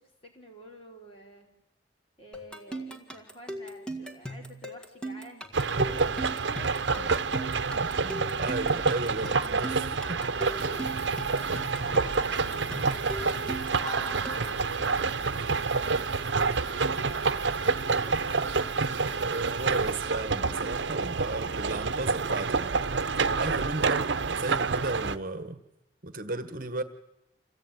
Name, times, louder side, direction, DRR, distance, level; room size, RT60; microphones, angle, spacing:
voice 1, 0.0-1.5 2.2-6.8 9.5-14.4, equal, 30° left, 1 dB, 4.4 m, -51 dB
sound 1, 2.3-14.6, right 1 dB, 5° left, 2.0 m, -39 dB
sound 2, 5.5-25.2, right 4 dB, 80° right, 0.8 m, -28 dB
voice 2, 7.8-10.2 19.2-22.7 23.3-25.6 26.0-26.8, right 2 dB, 50° right, 10 dB, 1.5 m, -34 dB
sound 3, 10.4-20.0, left 2 dB, 85° left, 1.7 m, -47 dB
27.0 x 17.0 x 9.3 m, 0.92 s
head